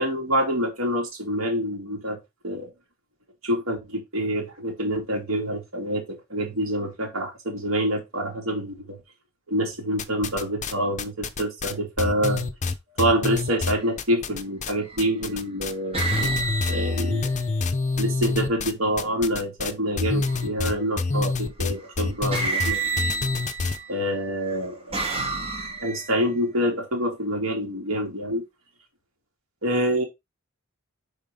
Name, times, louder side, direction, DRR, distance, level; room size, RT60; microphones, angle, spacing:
voice 1, 0.0-2.7 3.4-9.0 9.5-12.4 13.0-16.3 16.7-17.3 18.0-22.8 23.9-25.0 25.8-28.4 29.6-30.0, equal, 75° right, 2.5 m, -26 dB
sound 1, 10.0-10.7 11.0-14.7 15.0-15.7 16.0-23.8, left 3 dB, 35° left, 0.6 m, -27 dB
sound 2, 13.7-14.0 14.8-15.3 15.9-18.0 20.2-20.7 21.8-21.9 22.3-23.9 24.5-26.2, right 3 dB, 30° right, 1.8 m, -30 dB
5.2 x 4.9 x 3.7 m
head